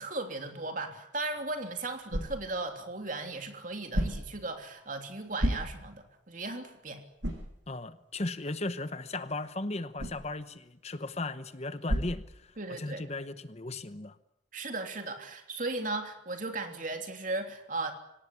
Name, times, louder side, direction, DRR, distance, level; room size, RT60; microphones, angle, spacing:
voice 1, 0.0-7.1 12.6-13.1 14.5-17.9, right 2 dB, 40° right, 5 dB, 3.2 m, -36 dB
sound 1, 1.2-13.0, equal, 65° right, 7.7 m, -38 dB
voice 2, 7.7-14.2, left 2 dB, 35° left, 12 dB, 0.9 m, -36 dB
25.5 x 18.5 x 9.7 m, 0.83 s
head